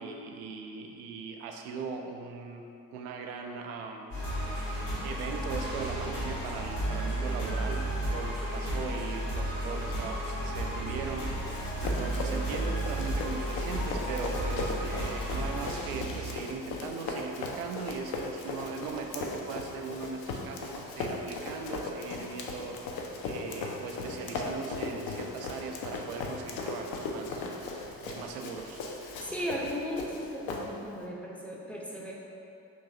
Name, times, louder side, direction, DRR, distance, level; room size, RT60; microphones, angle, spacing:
voice 1, 0.0-2.7 2.9-4.1 4.5-11.3 11.8-22.8 23.2-27.4 28.0-28.8, right 5 dB, 70° right, 3 dB, 0.5 m, -39 dB
sound 1, 4.1-16.4, right 1 dB, 75° left, 1.4 m, -33 dB
Run, 11.2-31.0, left 3 dB, 50° left, 0.6 m, -38 dB
voice 2, 29.2-32.1, equal, 5° left, -4 dB, 0.6 m, -36 dB
4.6 x 3.0 x 2.6 m, 2.7 s
figure-of-eight pair, 40°, 46 cm